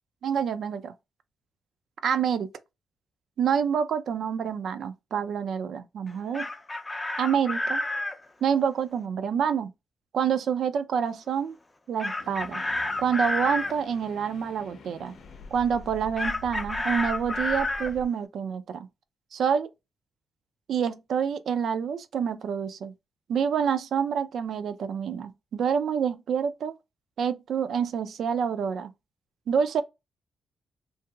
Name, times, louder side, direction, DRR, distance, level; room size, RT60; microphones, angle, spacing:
voice 1, 0.2-0.9 2.0-2.5 3.4-6.5 7.2-7.8 8.4-9.7 10.1-11.5 11.9-12.6 13.0-15.1 15.5-18.9 19.3-19.7 20.7-22.9 23.3-26.7 27.2-28.9 29.5-29.8, right 7 dB, 70° right, 0.3 m, -27 dB
Chicken rooster, 6.1-8.2 12.0-13.7 16.2-17.9, left 2 dB, 20° left, 0.4 m, -30 dB
sound 1, 12.2-18.1, left 2 dB, 75° left, 0.6 m, -45 dB
2.8 x 2.7 x 2.3 m
cardioid pair, 125°, 0 cm